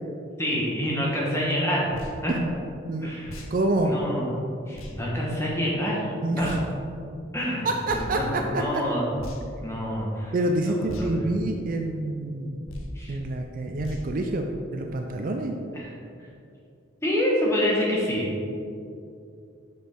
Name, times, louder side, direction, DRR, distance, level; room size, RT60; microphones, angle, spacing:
voice 1, 0.4-1.9 2.2-2.3 3.0-3.3 3.8-4.2 4.7-6.5 7.3-7.7 7.9-9.1 9.6-10.3 10.6-11.1 12.9-13.1 15.7-15.9 17.0-18.3, equal, 15° left, -4 dB, 1.2 m, -27 dB
sound 1, 1.9-2.2 3.2-3.5 4.7-4.9 6.4-6.6 7.9-8.1 9.1-9.6 10.9-11.1 12.6-13.0 13.8-14.1, left 1 dB, 80° left, 0.8 m, -38 dB
voice 2, 3.5-3.9 6.2-6.6 7.6-8.8 10.3-12.7 13.1-15.5, right 2 dB, 40° right, 3 dB, 0.4 m, -27 dB
6.5 x 6.2 x 3.6 m, 2.6 s
head